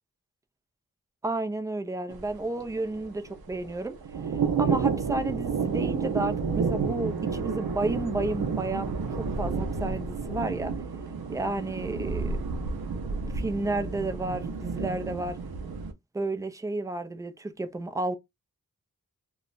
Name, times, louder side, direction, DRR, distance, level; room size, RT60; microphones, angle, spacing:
voice 1, 1.2-4.0 4.6-10.7 11.3-12.4 13.3-15.4 16.1-18.2, right 2 dB, 10° right, 0.4 m, -32 dB
sound 1, 2.1-15.9, right 5 dB, 85° right, 0.6 m, -30 dB
2.3 x 2.0 x 3.8 m
wide cardioid pair, 75°, 36 cm